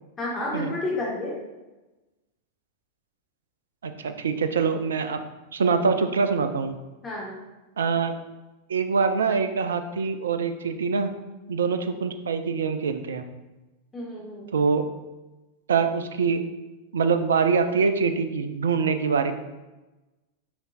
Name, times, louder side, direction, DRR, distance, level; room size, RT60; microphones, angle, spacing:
voice 1, 0.2-1.4 7.0-7.4 13.9-14.5, left 2 dB, 20° left, -5 dB, 1.7 m, -31 dB
voice 2, 3.8-5.2 5.5-6.7 7.8-8.2 8.7-11.1 11.5-13.2 14.5-14.9 15.7-16.4 16.9-19.3, right 5 dB, 65° right, 9 dB, 0.5 m, -24 dB
7.0 x 5.6 x 2.6 m, 1.1 s
figure-of-eight pair, 90°, 0 cm